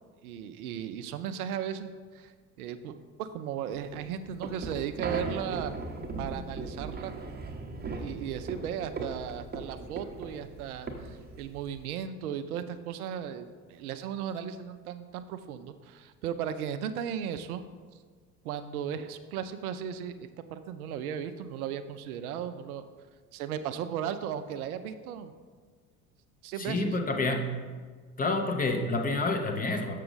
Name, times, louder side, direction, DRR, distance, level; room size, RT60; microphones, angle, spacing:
voice 1, 0.2-2.3 2.6-5.8 6.2-7.1 8.0-17.6 18.4-22.8 23.3-25.3 26.4-27.0, right 9 dB, 65° right, 10 dB, 0.6 m, -36 dB
sound 1, 3.8-11.9, right 3 dB, 20° right, 0.9 m, -38 dB
voice 2, 26.6-27.5 28.2-30.0, left 2 dB, 20° left, 4 dB, 0.7 m, -28 dB
6.6 x 6.4 x 3.9 m, 1.5 s
figure-of-eight pair, 65°, 47 cm